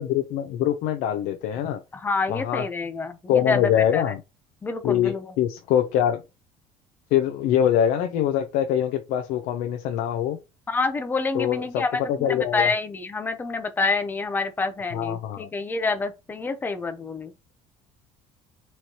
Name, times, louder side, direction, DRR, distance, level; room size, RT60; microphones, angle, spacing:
voice 1, 0.0-1.8 2.3-2.6 3.3-4.2 4.8-6.2 7.1-10.4 11.3-12.7 14.9-15.5, left 10 dB, 85° left, 0.6 m, -24 dB
voice 2, 1.9-3.6 3.9-4.0 4.6-5.3 10.7-17.3, left 4 dB, 15° left, 0.6 m, -27 dB
4.3 x 3.2 x 2.9 m
cardioid pair, 170°, 13 cm